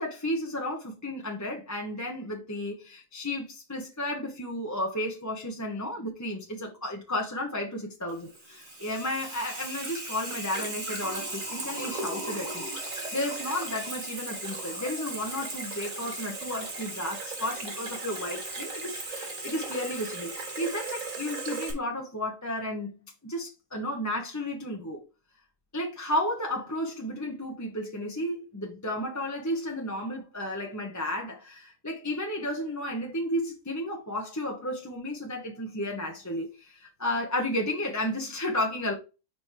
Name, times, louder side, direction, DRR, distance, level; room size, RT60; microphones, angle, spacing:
voice 1, 0.0-12.7 13.1-22.9 23.2-25.0 25.7-38.9, left 1 dB, 15° left, 0.8 m, -33 dB
Water tap faucet / Sink (filling or washing), 8.1-21.7, right 2 dB, 60° right, 2.4 m, -36 dB
5.1 x 4.4 x 4.6 m
omnidirectional pair, 1.6 m